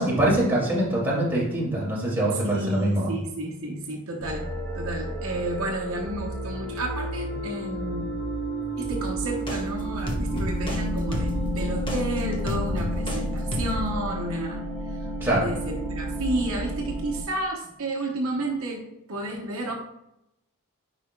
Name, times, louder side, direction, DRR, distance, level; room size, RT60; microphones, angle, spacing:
voice 1, 0.0-3.1 15.2-15.5, right 1 dB, 10° right, -6 dB, 2.2 m, -24 dB
voice 2, 2.4-4.5 4.7-8.1 8.8-14.6 15.3-19.7, right 1 dB, 65° right, -1 dB, 0.9 m, -31 dB
sound 1, 4.2-17.2, equal, 40° left, 2.5 m, -31 dB
sound 2, 8.8-9.6 10.1-10.8 11.1-13.2 13.5-13.9, equal, 20° left, 1.0 m, -32 dB
9.5 x 4.9 x 2.2 m, 0.84 s
head